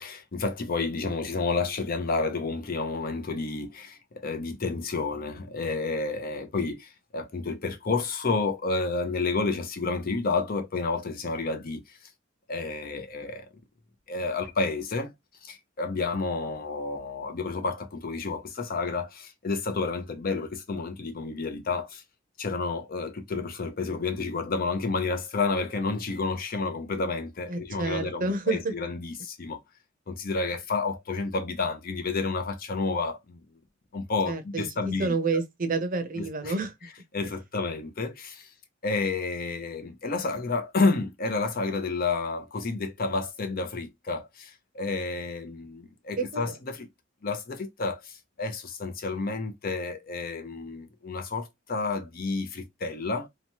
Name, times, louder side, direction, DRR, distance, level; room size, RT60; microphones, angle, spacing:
voice 1, 0.0-12.0 12.5-13.4 14.1-15.1 15.4-22.0 22.4-29.6 30.1-33.4 33.9-35.1 36.2-36.5 37.1-38.5 38.8-46.9 47.2-53.3, left 3 dB, 50° left, 0.6 m, -30 dB
voice 2, 27.5-28.7 34.3-34.7 35.0-36.7 46.2-46.4, right 3 dB, 45° right, 0.6 m, -29 dB
2.9 x 2.2 x 2.8 m
head